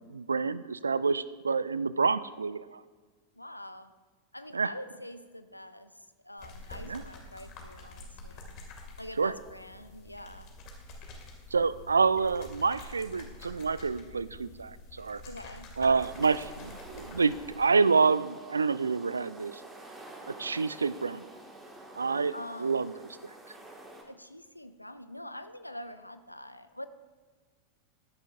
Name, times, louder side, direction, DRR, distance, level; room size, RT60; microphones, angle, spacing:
voice 1, 0.0-2.8 4.5-4.7 6.9-7.0 9.2-9.3 11.5-15.2 15.8-19.6 20.3-21.3 22.0-22.9, right 4 dB, 75° right, 17 dB, 0.3 m, -28 dB
voice 2, 3.4-3.9 4.3-8.5 9.0-10.5 15.2-15.7 22.3-23.0 24.1-26.9, left 1 dB, 85° left, 12 dB, 0.5 m, -45 dB
sound 1, 6.4-17.7, left 2 dB, 40° left, 2.0 m, -48 dB
sound 2, 16.0-24.0, right 1 dB, 10° right, 1.7 m, -48 dB
14.5 x 10.0 x 2.5 m, 1.4 s
figure-of-eight pair, 90°, 0 cm